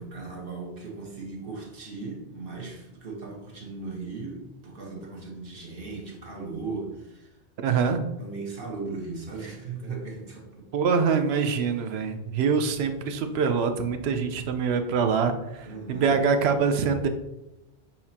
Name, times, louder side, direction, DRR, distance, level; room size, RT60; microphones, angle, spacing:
voice 1, 0.0-7.4 8.2-10.7 15.6-16.2, right 3 dB, 55° right, -1 dB, 1.2 m, -37 dB
voice 2, 7.6-8.1 10.7-17.1, right 5 dB, 70° right, 8 dB, 0.8 m, -24 dB
6.6 x 2.9 x 2.8 m, 0.92 s
omnidirectional pair, 1.2 m